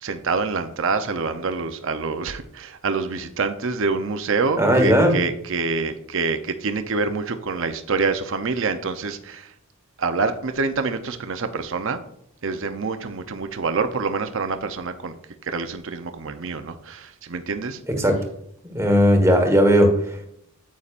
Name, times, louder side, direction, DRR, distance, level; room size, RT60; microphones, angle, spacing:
voice 1, 0.0-9.5 10.0-12.0 12.4-15.2 15.4-17.8, right 4 dB, 60° right, 8 dB, 0.7 m, -26 dB
voice 2, 4.6-5.2 17.9-18.2 18.6-20.2, equal, 15° right, 3 dB, 1.4 m, -17 dB
9.5 x 8.5 x 2.5 m, 0.70 s
head